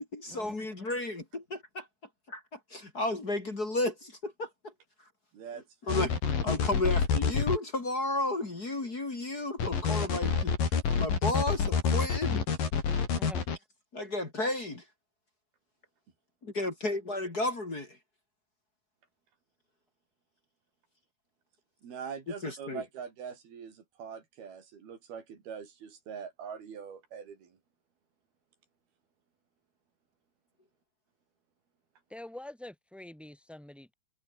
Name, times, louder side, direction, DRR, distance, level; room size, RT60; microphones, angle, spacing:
voice 1, 0.0-1.9 2.3-2.4 2.7-4.7 5.9-6.1 6.4-10.5 11.0-12.4 13.9-14.8 16.4-18.0 22.4-22.8, left 2 dB, 25° left, 3.2 m, -33 dB
sound 1, 5.9-7.6 9.6-13.6, left 6 dB, 65° left, 5.9 m, -27 dB
voice 2, 21.8-27.6, right 7 dB, 90° right, 5.8 m, -43 dB
voice 3, 32.1-33.9, left 1 dB, ahead, 7.4 m, -46 dB
omnidirectional pair, 4.2 m